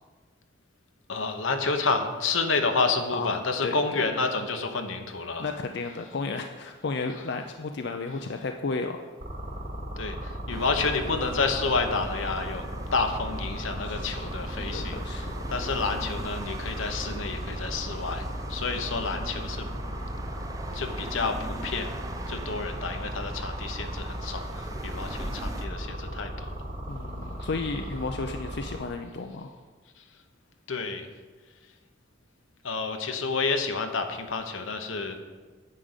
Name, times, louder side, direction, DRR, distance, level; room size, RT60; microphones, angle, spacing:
voice 1, 1.1-5.4 10.0-12.6 12.9-18.2 18.5-19.7 20.7-21.9 22.3-26.5 30.7-31.1 32.6-35.2, left 4 dB, 85° left, 6 dB, 1.0 m, -29 dB
voice 2, 3.1-4.0 5.4-9.1 13.8-15.5 26.9-29.6, left 3 dB, 60° left, 5 dB, 0.5 m, -33 dB
sound 1, 9.2-28.8, equal, 60° right, 3.2 m, -36 dB
sound 2, 10.5-25.7, right 1 dB, 20° right, 0.7 m, -40 dB
9.8 x 5.2 x 8.0 m, 1.4 s
head